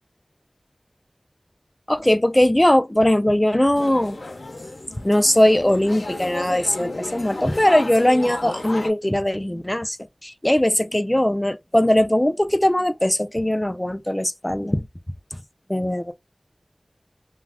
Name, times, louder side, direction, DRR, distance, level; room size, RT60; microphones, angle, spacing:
voice 1, 1.9-4.2 5.0-10.0 10.2-14.8 15.7-16.1, left 1 dB, 20° left, 0.4 m, -20 dB
sound 1, 3.7-8.9, left 2 dB, 85° left, 0.5 m, -33 dB
2.3 x 2.3 x 3.3 m
wide cardioid pair, 45°, 0 cm